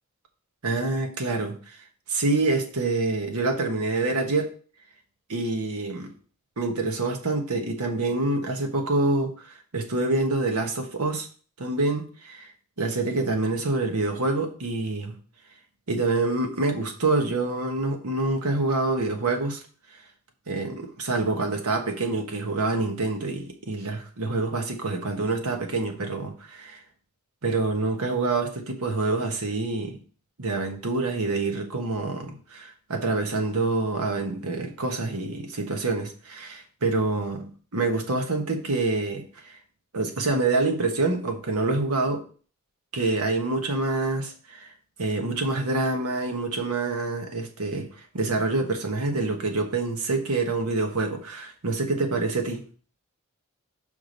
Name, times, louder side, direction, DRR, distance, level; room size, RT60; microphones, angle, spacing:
voice 1, 0.6-1.8 2.1-4.5 5.3-6.1 6.6-11.3 11.6-12.5 12.8-15.2 15.9-19.6 20.5-26.8 27.4-30.0 30.4-37.5 37.7-39.6 39.9-42.3 42.9-44.7 45.0-52.6, right 3 dB, 85° right, 4 dB, 1.3 m, -26 dB
5.8 x 4.9 x 5.2 m, 0.41 s
head